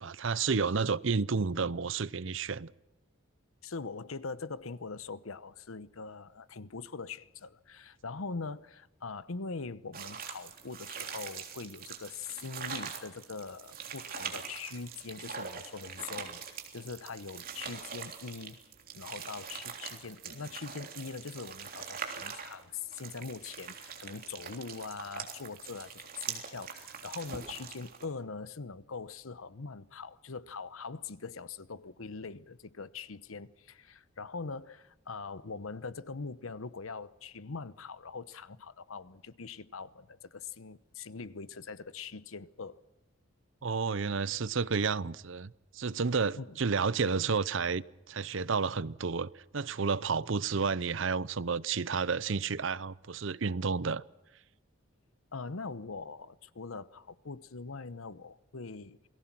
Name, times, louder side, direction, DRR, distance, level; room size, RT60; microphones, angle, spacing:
voice 1, 0.0-2.7 43.6-54.0, right 5 dB, 65° right, 0.7 m, -31 dB
voice 2, 3.6-18.6 18.9-42.8 46.4-46.6 55.3-59.1, left 4 dB, 90° left, 0.9 m, -42 dB
sound 1, 9.9-28.0, right 7 dB, 45° right, 3.4 m, -43 dB
28.5 x 19.0 x 6.1 m
head